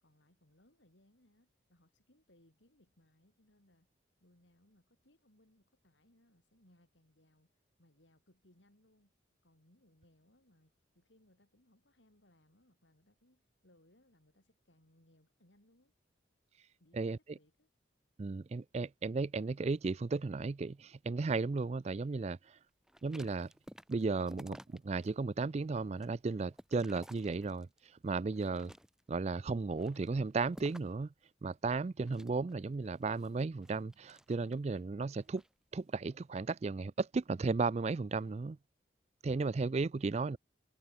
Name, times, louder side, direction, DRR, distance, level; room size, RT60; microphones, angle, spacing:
voice 1, 0.0-3.9 4.2-7.5 7.8-9.1 9.4-15.9 16.8-17.7 40.0-40.4, left 1 dB, 70° left, 4.6 m, -69 dB
voice 2, 18.2-22.6 23.0-23.5 23.9-28.7 29.1-31.1 31.4-35.4 35.7-38.6 39.2-40.4, right 4 dB, 35° right, 0.3 m, -35 dB
sound 1, 22.9-25.1 25.5-27.9 28.3-29.2 29.7-31.1 32.0-34.7 35.2-35.5, equal, 5° right, 1.7 m, -55 dB
head